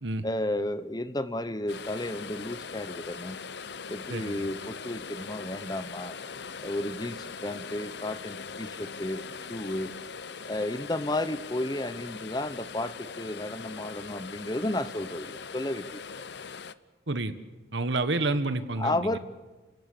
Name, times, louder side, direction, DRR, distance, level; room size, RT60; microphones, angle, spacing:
voice 1, 0.2-3.4 3.9-6.1 6.6-9.2 9.5-9.9 10.5-16.0 18.8-19.2, left 1 dB, 20° left, 12 dB, 0.9 m, -32 dB
sound 1, 1.7-16.7, left 5 dB, 60° left, 0.8 m, -41 dB
voice 2, 4.1-4.4 17.1-17.3 17.7-19.2, right 2 dB, 70° right, 11 dB, 1.4 m, -29 dB
28.5 x 17.5 x 6.7 m, 1.3 s
head